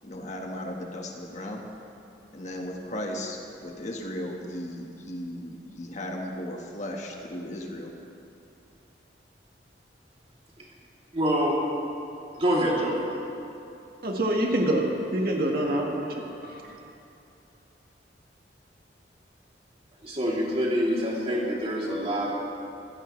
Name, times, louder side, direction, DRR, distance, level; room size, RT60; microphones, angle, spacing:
voice 1, 0.0-1.6 2.3-7.9, left 1 dB, 40° left, 0 dB, 1.6 m, -36 dB
voice 2, 11.1-11.6 12.4-13.0 20.0-22.4, equal, 35° right, -5 dB, 3.2 m, -26 dB
voice 3, 14.0-16.8, right 1 dB, 55° right, 0 dB, 1.8 m, -26 dB
25.0 x 16.0 x 3.3 m, 2.7 s
head